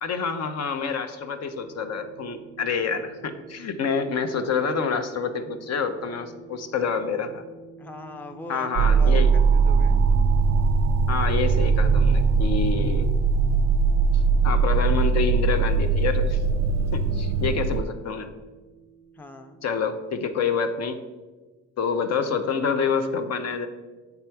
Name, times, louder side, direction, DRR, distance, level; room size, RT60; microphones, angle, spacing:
voice 1, 0.0-7.4 8.5-9.3 11.1-13.1 14.1-16.4 16.9-18.3 19.6-21.0 21.8-23.7, left 5 dB, 60° left, 8 dB, 0.7 m, -27 dB
sound 1, 1.4-20.8, right 6 dB, 85° left, 0.9 m, -49 dB
voice 2, 7.8-10.0 19.1-19.6, left 2 dB, 5° left, 6 dB, 0.4 m, -40 dB
sound 2, 8.8-17.8, right 5 dB, 60° right, 0.5 m, -20 dB
8.0 x 3.5 x 4.5 m, 1.3 s
cardioid pair, 90°, 30 cm